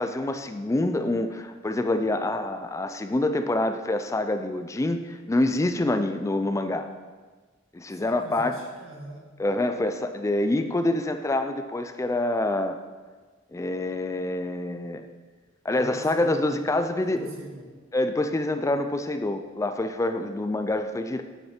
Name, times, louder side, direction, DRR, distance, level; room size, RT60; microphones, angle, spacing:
voice 1, 0.0-6.9 7.7-8.5 9.4-12.8 13.5-15.0 15.6-17.3 17.9-21.2, left 2 dB, 15° left, 8 dB, 0.3 m, -26 dB
voice 2, 7.9-9.3 15.7-16.7 17.0-17.8, right 1 dB, 85° right, -2 dB, 2.1 m, -43 dB
8.5 x 6.7 x 4.3 m, 1.4 s
head